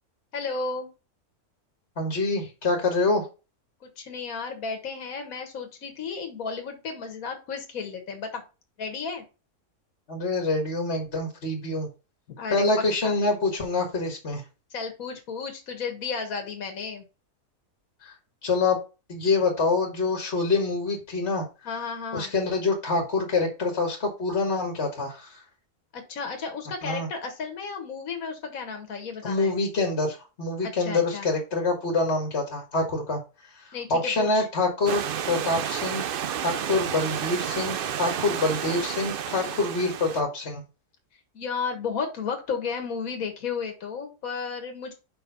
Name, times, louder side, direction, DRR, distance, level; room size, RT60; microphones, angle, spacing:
voice 1, 0.3-0.9 4.0-8.4 8.8-9.2 12.4-12.7 13.0-13.2 14.7-17.1 21.7-22.3 25.9-29.5 30.6-31.3 33.7-34.5 35.4-35.6 36.4-36.7 38.1-38.4 39.3-39.6 41.3-44.9, left 5 dB, 65° left, 3 dB, 1.8 m, -33 dB
voice 2, 2.0-3.3 10.1-11.9 12.5-14.4 18.0-18.1 18.4-18.8 19.1-21.4 22.1-25.4 26.8-27.1 29.2-33.2 33.5-35.0 35.3-36.1 36.4-40.6, left 3 dB, 45° left, 2 dB, 1.7 m, -26 dB
Stream / Liquid, 34.9-40.2, right 9 dB, 90° right, 0.4 m, -31 dB
5.4 x 4.5 x 5.4 m, 0.30 s
omnidirectional pair, 1.6 m